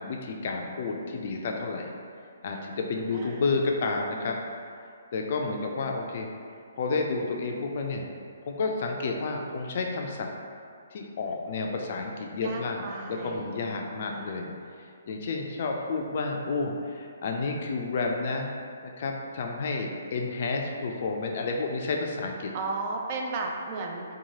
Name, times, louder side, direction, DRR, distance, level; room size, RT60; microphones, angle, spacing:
voice 1, 0.0-1.9 2.4-4.4 5.1-6.3 6.7-8.1 8.4-10.3 10.9-14.5 15.1-18.5 18.8-22.5, left 3 dB, 50° left, 1 dB, 0.3 m, -30 dB
voice 2, 3.1-3.5 12.4-13.6 14.1-14.5 22.5-24.0, right 3 dB, 40° right, 1 dB, 0.3 m, -35 dB
2.9 x 2.2 x 2.7 m, 2.2 s
figure-of-eight pair, 135°, 0 cm